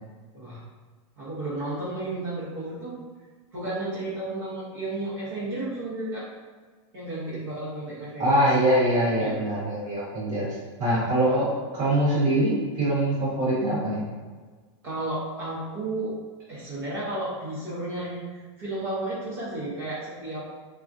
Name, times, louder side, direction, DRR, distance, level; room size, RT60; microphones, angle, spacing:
voice 1, 1.2-2.9 3.5-6.2 6.9-8.4 9.2-9.4 14.8-16.1 16.5-20.5, right 2 dB, 50° right, -10 dB, 1.0 m, -33 dB
voice 2, 8.2-11.5 11.7-14.0, right 1 dB, 30° right, -9 dB, 1.2 m, -23 dB
3.6 x 2.4 x 2.6 m, 1.5 s
supercardioid pair, 175°, 16 cm